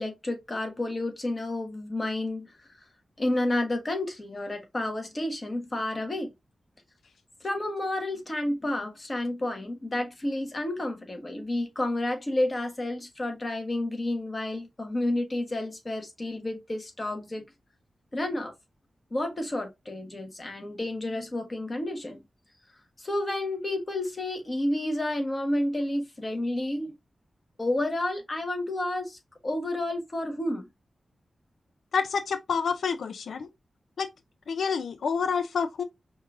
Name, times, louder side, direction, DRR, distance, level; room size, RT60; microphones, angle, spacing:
voice 1, 0.0-2.5 3.2-6.3 7.4-17.4 18.1-18.5 19.1-22.2 23.0-26.9 27.6-30.7, left 1 dB, 30° left, 1.2 m, -30 dB
voice 2, 31.9-33.5 34.0-34.1 34.5-35.8, left 5 dB, 90° left, 0.3 m, -28 dB
5.2 x 2.5 x 2.4 m
wide cardioid pair, 95°, 0 cm